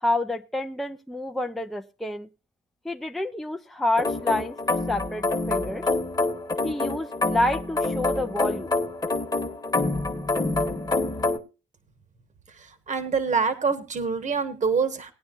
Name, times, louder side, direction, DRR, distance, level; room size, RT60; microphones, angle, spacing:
voice 1, 0.0-2.3 2.8-5.9 6.6-8.7, left 1 dB, ahead, 6 dB, 0.6 m, -28 dB
sound 1, 4.0-11.4, left 2 dB, 20° left, 1.4 m, -26 dB
voice 2, 12.5-15.1, right 5 dB, 35° right, 10 dB, 1.4 m, -26 dB
18.5 x 9.5 x 2.5 m, 0.29 s
cardioid pair, 90°, 20 cm